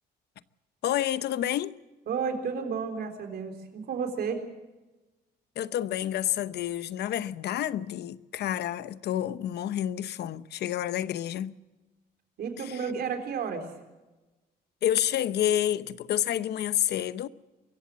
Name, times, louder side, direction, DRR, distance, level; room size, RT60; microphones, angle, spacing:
voice 1, 0.8-1.8 5.6-11.5 12.6-12.8 14.8-17.3, left 11 dB, 75° left, 0.8 m, -29 dB
voice 2, 2.1-4.4 12.4-13.7, right 6 dB, 65° right, 3.8 m, -32 dB
25.0 x 15.0 x 7.5 m
cardioid pair, 105°, 17 cm